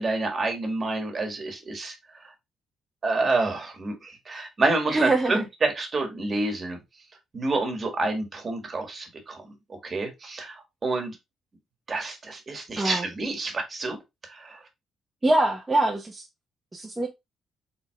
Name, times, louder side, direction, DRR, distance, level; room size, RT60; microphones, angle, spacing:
voice 1, 0.0-1.9 3.0-6.8 7.3-9.4 9.7-11.1 11.9-14.0 14.3-14.6, right 3 dB, 35° right, 1.4 m, -28 dB
voice 2, 4.9-5.4 12.8-13.0 15.2-16.3 16.7-17.1, right 2 dB, 20° right, 0.8 m, -24 dB
4.5 x 3.6 x 2.3 m
cardioid pair, 90°, 0 cm